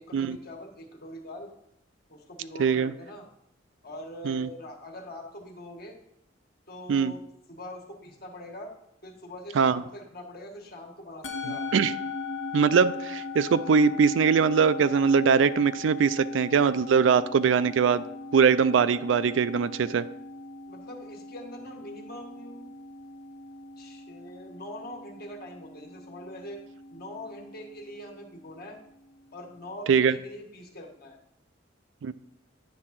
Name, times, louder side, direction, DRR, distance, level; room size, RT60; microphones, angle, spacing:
voice 1, 0.0-1.5 2.1-3.3 3.8-6.0 6.7-8.7 9.0-11.6 20.7-22.7 23.8-26.6 26.9-28.8 29.3-31.2, left 1 dB, 55° left, 2 dB, 1.4 m, -43 dB
voice 2, 2.6-2.9 4.2-4.5 6.9-7.1 9.5-9.8 11.4-11.9 12.5-18.0 18.3-20.0 29.9-30.1 32.0-32.1, right 6 dB, 85° right, 15 dB, 0.4 m, -22 dB
Musical instrument, 11.2-29.7, left 3 dB, 75° left, 0.9 m, -40 dB
9.6 x 3.7 x 5.9 m, 0.80 s
head